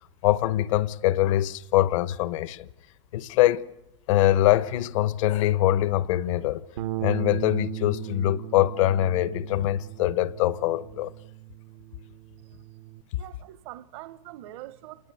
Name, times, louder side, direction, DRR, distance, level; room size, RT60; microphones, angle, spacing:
voice 1, 0.2-2.7 3.1-3.7 4.1-6.6 7.0-11.1, left 14 dB, 70° left, 1.1 m, -23 dB
Bass guitar, 6.8-13.0, right 17 dB, 90° right, 0.9 m, -37 dB
voice 2, 13.2-15.1, right 15 dB, 60° right, 0.8 m, -43 dB
28.5 x 19.5 x 8.1 m
supercardioid pair, 150°, 17 cm